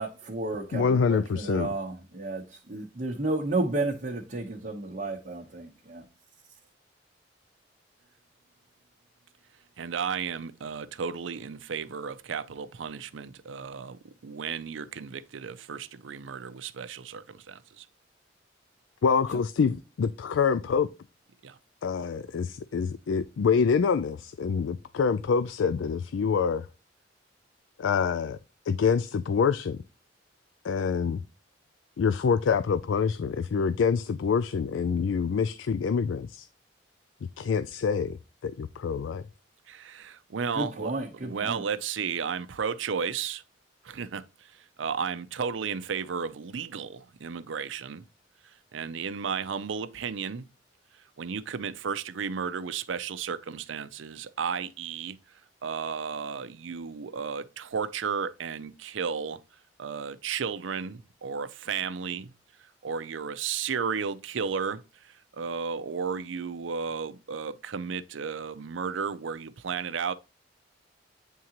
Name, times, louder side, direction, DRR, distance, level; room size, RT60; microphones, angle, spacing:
voice 1, 0.0-6.0 40.5-41.6, right 2 dB, 45° right, 1.0 m, -32 dB
voice 2, 0.7-1.7 19.0-20.9 21.8-26.7 27.8-28.4 28.7-29.8 30.6-31.2 32.0-36.5 37.4-38.2 38.4-39.3, left 6 dB, 85° left, 0.4 m, -26 dB
voice 3, 9.8-17.9 21.4-21.6 39.7-40.9 41.2-43.4 43.8-48.0 48.7-50.5 51.2-55.2 55.6-59.4 59.8-62.3 62.8-70.1, right 6 dB, 85° right, 0.5 m, -33 dB
9.2 x 3.7 x 2.9 m
head